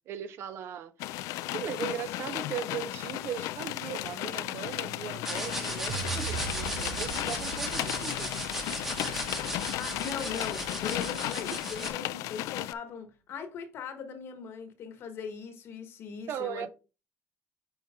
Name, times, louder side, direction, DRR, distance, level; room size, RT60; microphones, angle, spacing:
voice 1, 0.1-8.4 8.7-9.2 16.3-16.7, right 9 dB, 50° right, 0.9 m, -39 dB
sound 1, 1.0-12.7, left 16 dB, 80° left, 0.4 m, -35 dB
sound 2, 5.2-11.9, right 1 dB, 5° right, 1.2 m, -37 dB
sound 3, 5.9-12.1, right 8 dB, 80° right, 0.7 m, -42 dB
voice 2, 9.8-16.7, left 6 dB, 45° left, 1.3 m, -40 dB
8.9 x 4.4 x 3.7 m
cardioid pair, 170°, 6 cm